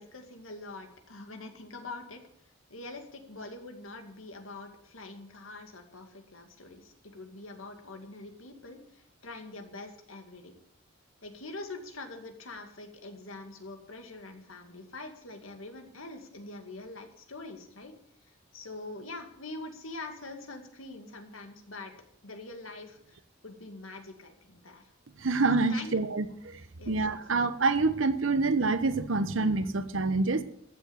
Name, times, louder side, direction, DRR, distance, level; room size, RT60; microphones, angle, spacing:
voice 1, 0.0-2.2 2.7-10.5 11.2-18.0 18.3-21.9 22.2-24.9 25.7-26.0 26.8-27.2, left 2 dB, 90° left, 2.2 m, -44 dB
voice 2, 25.2-26.6 26.9-30.4, right 3 dB, 75° right, 1.0 m, -27 dB
14.5 x 7.6 x 8.1 m
head